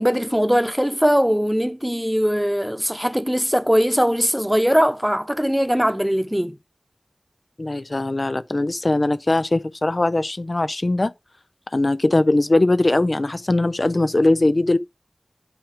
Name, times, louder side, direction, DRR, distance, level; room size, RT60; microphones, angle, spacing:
voice 1, 0.0-6.6, equal, 5° right, 0.9 m, -20 dB
voice 2, 7.6-11.1 11.7-14.8, left 2 dB, 50° left, 0.4 m, -20 dB
8.6 x 3.6 x 5.0 m
wide cardioid pair, 45°, 0 cm